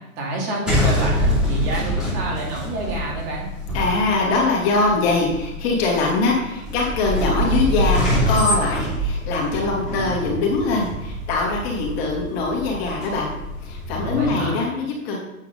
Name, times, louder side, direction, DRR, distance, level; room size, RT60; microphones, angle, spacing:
voice 1, 0.2-3.5 13.9-14.6, right 1 dB, 40° right, -2 dB, 2.8 m, -28 dB
sound 1, 0.6-14.4, equal, ahead, 2.9 m, -25 dB
voice 2, 3.7-13.3 13.6-15.2, left 3 dB, 45° left, -1 dB, 2.5 m, -22 dB
8.5 x 4.6 x 5.3 m, 0.91 s
hypercardioid pair, 140°, 43 cm